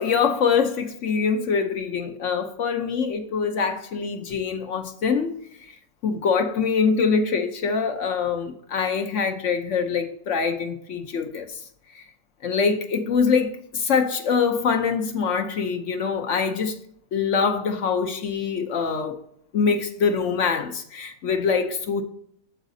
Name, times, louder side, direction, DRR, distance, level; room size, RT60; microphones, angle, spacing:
voice 1, 0.0-5.4 6.0-11.6 11.9-12.0 12.4-16.8 17.1-19.2 19.5-22.0, left 5 dB, 60° left, 0.9 m, -24 dB
8.9 x 7.1 x 2.7 m
omnidirectional pair, 1.6 m